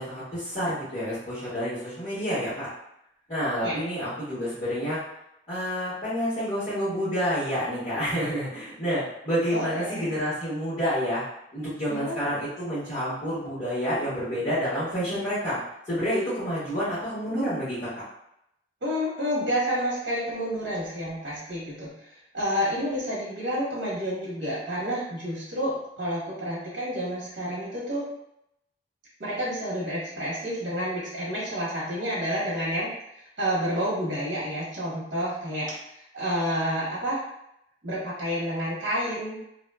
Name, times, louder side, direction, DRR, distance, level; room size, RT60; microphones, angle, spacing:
voice 1, 0.0-2.7 3.3-5.0 5.5-11.2 11.5-15.6 15.9-17.9, equal, 35° left, -17 dB, 1.4 m, -29 dB
voice 2, 9.5-10.1 11.9-12.2 18.8-28.1 29.2-37.2 37.8-39.4, equal, 75° right, -7 dB, 1.0 m, -29 dB
2.9 x 2.2 x 2.2 m, 0.78 s
head